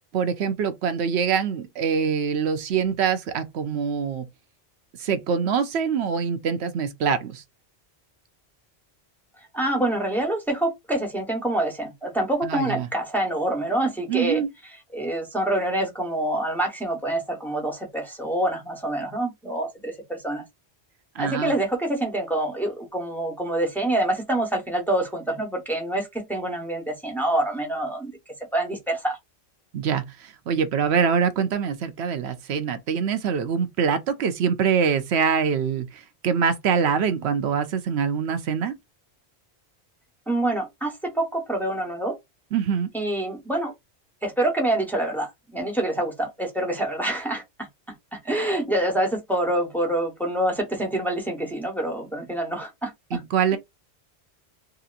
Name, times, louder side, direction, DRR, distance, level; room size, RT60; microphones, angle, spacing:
voice 1, 0.1-4.3 5.0-7.4 12.4-12.9 14.1-14.5 21.1-21.5 29.7-38.7 42.5-42.9 53.1-53.6, right 6 dB, 85° right, 0.9 m, -24 dB
voice 2, 9.5-14.4 14.9-20.4 21.2-28.2 28.5-29.2 40.3-42.1 42.9-43.7 44.2-47.4 48.1-53.2, right 1 dB, ahead, 1.0 m, -26 dB
2.8 x 2.8 x 2.4 m
omnidirectional pair, 1.1 m